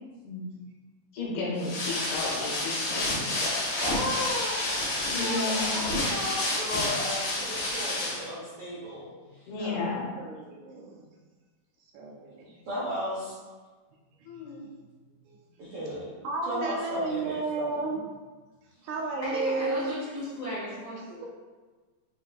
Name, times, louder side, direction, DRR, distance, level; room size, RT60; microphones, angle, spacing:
voice 1, 1.1-3.6 5.1-5.7 9.5-10.1 14.3-14.7, left 3 dB, 75° left, -4 dB, 2.4 m, -33 dB
sound 1, 1.6-8.3, left 2 dB, 60° left, 2.6 m, -29 dB
voice 2, 3.8-9.1 9.3-9.5 12.7-13.4 15.6-16.1 16.4-17.8, equal, 65° right, -8 dB, 1.5 m, -35 dB
voice 3, 9.0-11.0 11.9-12.6 14.6-14.7 15.3-15.4 16.2-18.1 18.8-20.1, right 3 dB, 80° right, -1 dB, 1.8 m, -33 dB
voice 4, 19.2-21.3, equal, 45° left, -10 dB, 1.5 m, -35 dB
5.2 x 4.2 x 2.3 m, 1.3 s
omnidirectional pair, 3.7 m